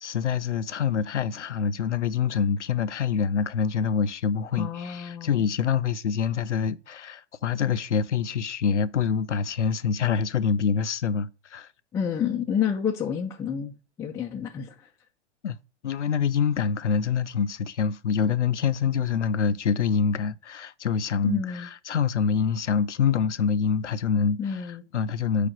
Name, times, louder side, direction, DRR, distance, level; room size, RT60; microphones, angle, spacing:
voice 1, 0.0-11.7 15.4-15.6 15.8-25.5, left 6 dB, 90° left, 0.5 m, -26 dB
voice 2, 4.6-5.4 11.9-14.9 21.2-21.7 24.4-24.8, left 8 dB, 10° left, 0.4 m, -29 dB
5.0 x 4.8 x 6.0 m
hypercardioid pair, 110°, 35 cm